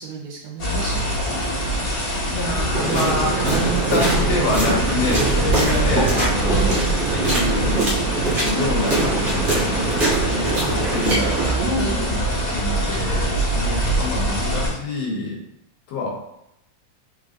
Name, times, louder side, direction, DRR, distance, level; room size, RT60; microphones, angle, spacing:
voice 1, 0.0-1.8 6.6-7.0 11.1-12.6, right 1 dB, 80° right, -1 dB, 1.9 m, -31 dB
sound 1, 0.6-14.7, right 1 dB, 40° left, 1.5 m, -24 dB
voice 2, 2.3-6.7 7.1-11.5 12.2-15.4 15.9-16.1, left 2 dB, 70° left, -2 dB, 1.9 m, -27 dB
sound 2, 2.7-11.5, right 3 dB, 60° right, 0.7 m, -23 dB
4.4 x 3.8 x 2.5 m, 0.83 s
omnidirectional pair, 3.3 m